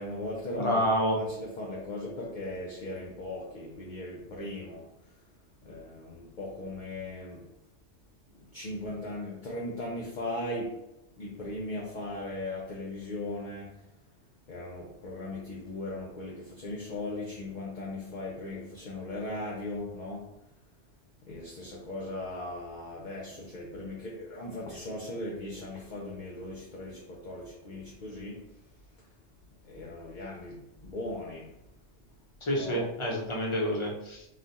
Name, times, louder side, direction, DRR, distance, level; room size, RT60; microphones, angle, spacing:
voice 1, 0.0-0.8 1.1-5.2 5.6-7.5 8.3-10.8 11.2-13.9 14.5-20.3 21.2-28.5 29.6-31.6 32.6-32.9, left 1 dB, 50° left, 0.7 m, -38 dB
voice 2, 0.6-1.2 32.4-34.3, equal, 25° left, 0.9 m, -28 dB
3.9 x 2.4 x 4.1 m
omnidirectional pair, 1.3 m